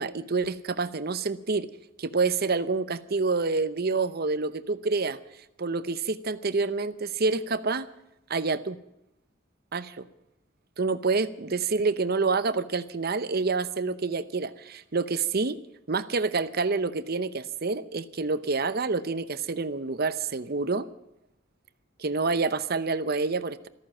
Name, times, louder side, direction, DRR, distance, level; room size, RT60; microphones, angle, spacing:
voice 1, 0.0-1.7 2.0-5.2 5.6-7.9 8.3-8.8 9.7-10.0 10.8-15.6 15.9-20.9 22.0-23.7, right 4 dB, 50° right, 14 dB, 0.8 m, -27 dB
14.0 x 14.0 x 7.3 m, 0.84 s
head